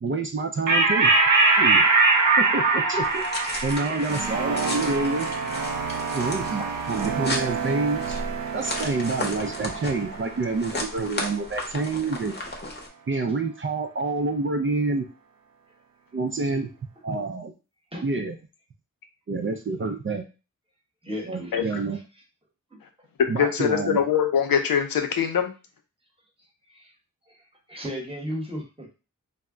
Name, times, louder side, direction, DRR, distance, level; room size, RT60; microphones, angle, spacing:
voice 1, 0.0-1.1 1.6-1.9 2.4-3.2 3.6-5.3 6.1-8.2 8.5-12.4 13.1-15.0 16.1-16.7 17.0-17.5 18.0-18.4 19.3-20.2 21.3-22.0 23.3-24.0, right 3 dB, 35° right, 5 dB, 0.4 m, -27 dB
sound 1, 0.7-7.5, right 3 dB, 65° right, 0.8 m, -22 dB
sound 2, 3.0-12.9, left 2 dB, 30° left, 0.8 m, -35 dB
sound 3, 4.1-12.7, right 6 dB, 85° right, 0.5 m, -32 dB
voice 2, 21.0-21.7 22.7-22.8 26.7-26.9 27.7-28.9, equal, 15° right, 0 dB, 1.0 m, -35 dB
voice 3, 23.4-25.5, left 8 dB, 80° left, 6 dB, 0.5 m, -23 dB
2.2 x 2.1 x 3.6 m, 0.31 s
cardioid pair, 60°, 34 cm